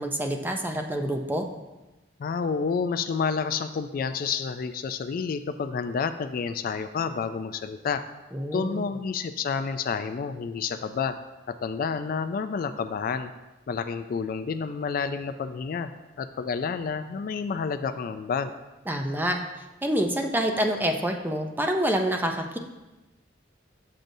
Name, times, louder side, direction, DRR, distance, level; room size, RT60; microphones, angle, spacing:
voice 1, 0.0-1.5 8.3-8.8 18.9-19.4 19.8-22.6, right 1 dB, 10° right, 4 dB, 0.5 m, -27 dB
voice 2, 2.2-8.0 8.5-11.1 11.5-13.3 13.7-15.9 16.2-18.5, left 5 dB, 50° left, 10 dB, 0.3 m, -29 dB
7.4 x 6.6 x 2.6 m, 1.1 s
head